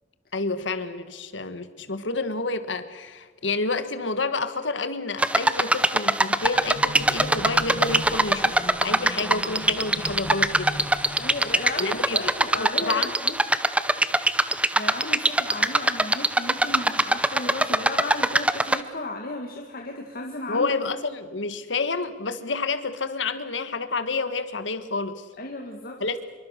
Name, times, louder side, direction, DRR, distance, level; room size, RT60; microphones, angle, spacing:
voice 1, 0.3-10.9 11.8-12.2 12.5-13.1 20.5-25.2 26.0-26.2, left 3 dB, 80° left, 11 dB, 1.6 m, -29 dB
sound 1, 5.2-18.8, right 1 dB, 5° right, 0.7 m, -23 dB
sound 2, 6.4-13.3, left 1 dB, 35° left, 2.1 m, -39 dB
voice 2, 11.2-13.3 14.8-20.7 25.4-26.0, left 2 dB, 50° left, 2 dB, 2.1 m, -34 dB
25.5 x 23.5 x 6.6 m, 1.4 s
head